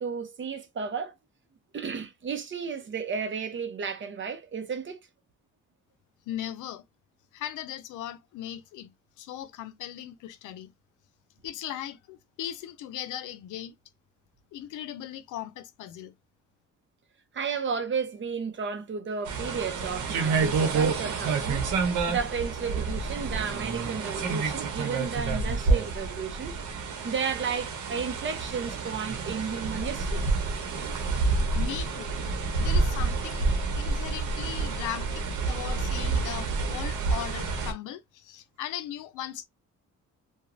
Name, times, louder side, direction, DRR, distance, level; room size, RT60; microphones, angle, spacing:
voice 1, 0.0-1.1 1.7-5.0 17.3-21.7 22.1-26.6 27.0-30.2 32.5-32.6, right 6 dB, 40° right, 0.7 m, -33 dB
voice 2, 6.3-6.8 7.3-8.9 9.2-10.7 11.4-13.7 14.5-16.1 31.5-32.1 32.6-39.5, left 11 dB, 85° left, 0.5 m, -38 dB
sound 1, 19.2-37.7, right 4 dB, 80° right, 1.0 m, -28 dB
2.9 x 2.3 x 2.6 m
cardioid pair, 90°, 30 cm